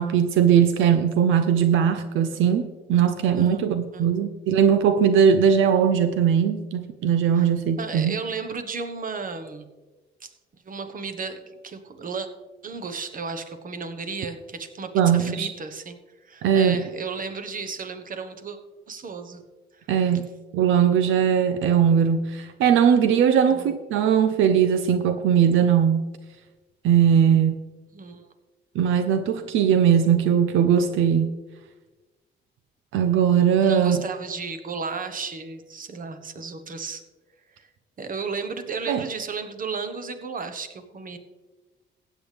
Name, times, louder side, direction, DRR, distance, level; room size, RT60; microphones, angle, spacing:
voice 1, 0.0-8.1 14.9-15.5 16.4-16.8 19.9-20.2 20.5-26.1 26.8-27.6 28.7-31.3 32.9-34.0 38.9-39.0, right 8 dB, 85° right, 9 dB, 0.6 m, -20 dB
voice 2, 7.8-9.7 10.2-10.3 10.6-12.3 12.6-18.6 18.9-19.4 19.8-19.9 23.5-23.7 27.9-28.3 33.6-37.0 37.6-37.7 38.0-41.2, right 5 dB, 45° right, 8 dB, 1.3 m, -34 dB
15.5 x 8.5 x 3.4 m, 1.2 s
cardioid pair, 90°, 20 cm